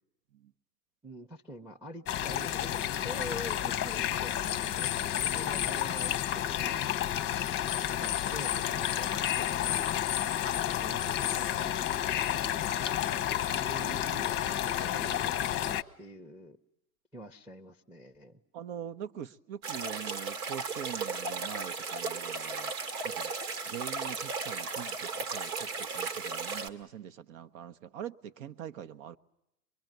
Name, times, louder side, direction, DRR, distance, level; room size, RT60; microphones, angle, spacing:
voice 1, 1.0-6.9 7.9-9.9 10.5-11.8 13.6-16.6 17.1-18.4, equal, 5° right, 5 dB, 0.9 m, -46 dB
sound 1, 2.1-15.8, left 11 dB, 25° left, 0.9 m, -31 dB
voice 2, 18.5-22.7 23.0-23.3 23.7-29.2, right 9 dB, 55° right, 14 dB, 1.1 m, -43 dB
sound 2, 19.6-26.7, right 4 dB, 75° right, 2.1 m, -35 dB
23.5 x 23.0 x 9.2 m, 0.85 s
hypercardioid pair, 110°, 46 cm